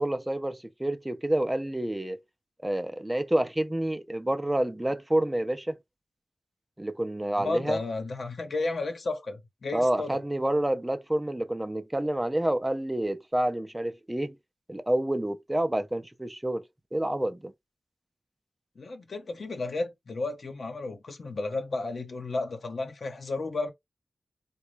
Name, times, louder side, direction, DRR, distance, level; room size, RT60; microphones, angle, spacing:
voice 1, 0.0-2.2 2.6-5.8 6.8-7.8 9.7-14.4 14.7-16.6 16.9-17.5, right 1 dB, 15° right, 0.5 m, -28 dB
voice 2, 7.3-10.2 18.7-23.7, left 3 dB, 70° left, 1.0 m, -33 dB
4.0 x 2.3 x 3.3 m
cardioid pair, 45°, 0 cm